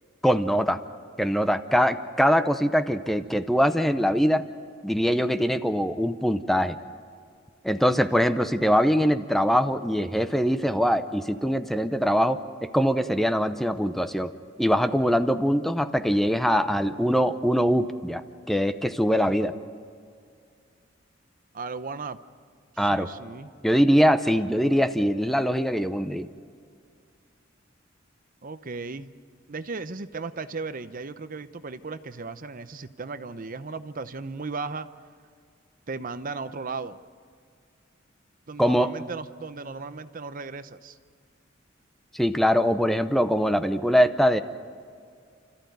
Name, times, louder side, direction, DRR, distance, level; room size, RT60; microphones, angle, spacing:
voice 1, 0.2-0.8 1.2-4.4 4.8-6.8 7.6-14.3 14.6-18.2 18.5-19.5 22.8-23.1 23.6-26.3 38.6-38.9 42.1-44.4, equal, ahead, 10 dB, 0.7 m, -22 dB
voice 2, 21.5-22.2 22.7-23.5 28.4-29.1 29.5-34.9 35.9-37.0 38.5-41.0, right 4 dB, 45° right, 12 dB, 0.7 m, -36 dB
30.0 x 14.5 x 9.3 m, 2.3 s
head